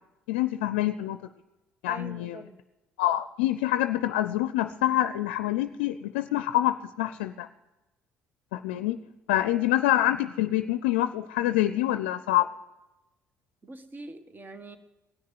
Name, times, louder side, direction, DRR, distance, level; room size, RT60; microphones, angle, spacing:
voice 1, 0.3-1.2 1.8-2.4 3.0-7.5 8.5-9.0 9.3-12.5, left 14 dB, 85° left, 11 dB, 0.4 m, -26 dB
voice 2, 1.9-2.6 9.5-9.6 13.6-14.8, right 2 dB, 30° right, 10 dB, 1.5 m, -43 dB
18.5 x 6.5 x 9.4 m, 1.0 s
hypercardioid pair, 60°, 6 cm